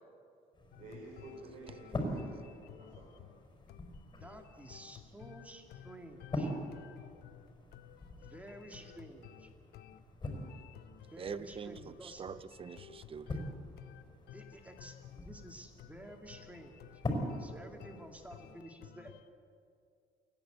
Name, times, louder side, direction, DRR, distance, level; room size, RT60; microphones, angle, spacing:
sound 1, 0.5-18.5, left 1 dB, 25° left, 5.1 m, -44 dB
sound 2, 0.7-19.3, left 11 dB, 70° left, 0.8 m, -55 dB
voice 1, 0.8-3.1 8.7-8.8, right 2 dB, 50° right, -3 dB, 5.2 m, -51 dB
voice 2, 4.1-6.5 8.3-9.5 11.1-12.4 14.3-16.8 17.4-19.2, right 1 dB, 10° right, 3 dB, 2.5 m, -51 dB
voice 3, 11.2-13.5, right 6 dB, 35° right, 15 dB, 0.7 m, -44 dB
29.0 x 11.0 x 8.2 m, 2.3 s
cardioid pair, 110°, 17 cm